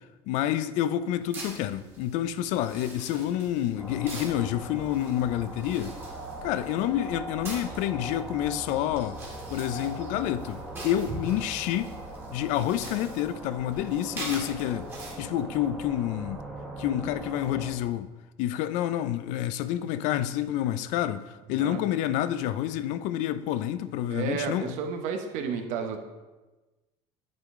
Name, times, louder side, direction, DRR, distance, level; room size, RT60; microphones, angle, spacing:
voice 1, 0.3-6.0 6.4-9.2 9.5-11.9 12.3-14.9 15.2-16.4 16.8-18.1 18.4-24.7, left 12 dB, 65° left, 0.4 m, -28 dB
sound 1, 1.2-15.2, right 2 dB, 15° right, 1.6 m, -44 dB
sound 2, 3.8-17.7, right 1 dB, ahead, 1.2 m, -40 dB
voice 2, 24.1-26.0, right 6 dB, 65° right, 0.8 m, -32 dB
8.5 x 3.8 x 3.6 m
cardioid pair, 145°, 13 cm